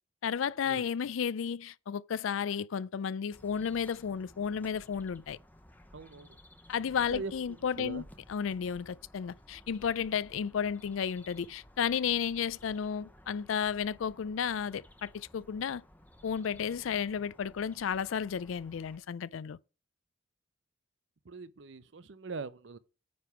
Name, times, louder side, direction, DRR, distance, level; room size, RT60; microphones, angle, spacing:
voice 1, 0.2-5.4 6.7-8.0 8.3-15.8 16.2-19.6, left 7 dB, 85° left, 0.4 m, -33 dB
sound 1, 3.3-19.0, left 1 dB, 10° left, 0.7 m, -57 dB
voice 2, 5.9-6.4 7.1-8.1 21.2-22.8, right 4 dB, 65° right, 0.6 m, -42 dB
9.4 x 3.5 x 5.7 m
head